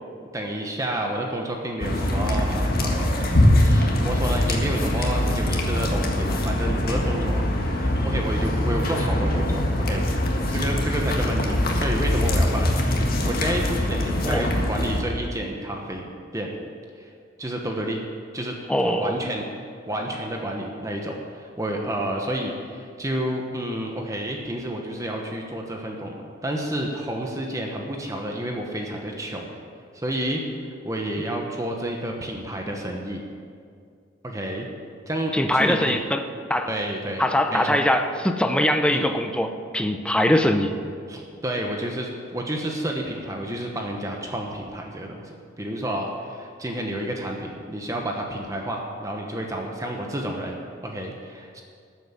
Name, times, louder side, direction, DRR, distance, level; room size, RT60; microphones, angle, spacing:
voice 1, 0.3-10.0 10.5-16.1 16.3-16.5 17.0-17.1 17.4-18.0 18.3-18.5 18.9-19.4 19.9-29.5 29.9-33.2 34.2-34.7 35.1-36.0 36.6-37.8 38.9-39.1 41.1-51.6, right 1 dB, 15° right, 1 dB, 1.1 m, -30 dB
sound 1, 1.8-15.0, left 1 dB, 55° left, 1.7 m, -23 dB
voice 2, 18.7-19.2 35.3-36.2 36.5-36.7 37.2-40.7, left 1 dB, 5° left, 6 dB, 0.7 m, -22 dB
13.0 x 7.8 x 7.3 m, 2.2 s
head